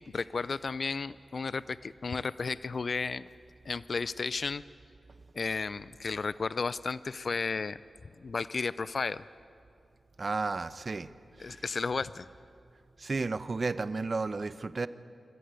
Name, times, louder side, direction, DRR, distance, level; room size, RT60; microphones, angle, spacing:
voice 1, 0.0-3.3 3.6-4.6 5.4-7.8 8.2-9.2 11.4-12.3, left 4 dB, 60° left, 17 dB, 0.4 m, -33 dB
voice 2, 10.2-11.1 11.4-11.6 13.0-14.9, right 3 dB, 50° right, 14 dB, 0.8 m, -33 dB
26.0 x 14.0 x 9.5 m, 2.4 s
cardioid pair, 50°, 0 cm